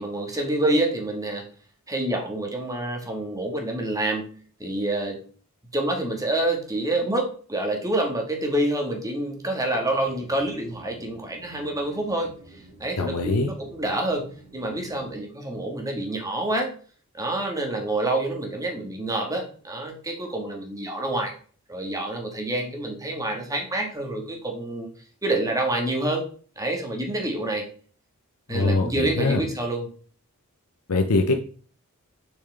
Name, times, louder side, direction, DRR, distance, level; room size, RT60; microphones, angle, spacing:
voice 1, 0.0-1.4 1.9-5.2 5.7-16.7 17.1-21.3 21.7-24.9 25.2-26.2 26.6-27.7 28.5-29.9, right 1 dB, 15° right, 2 dB, 1.7 m, -27 dB
sound 1, 9.8-15.1, right 2 dB, 40° right, 2.5 m, -50 dB
voice 2, 13.0-13.5 28.5-29.4 30.9-31.4, left 2 dB, 90° left, 5 dB, 0.8 m, -23 dB
6.4 x 6.3 x 3.4 m, 0.42 s
head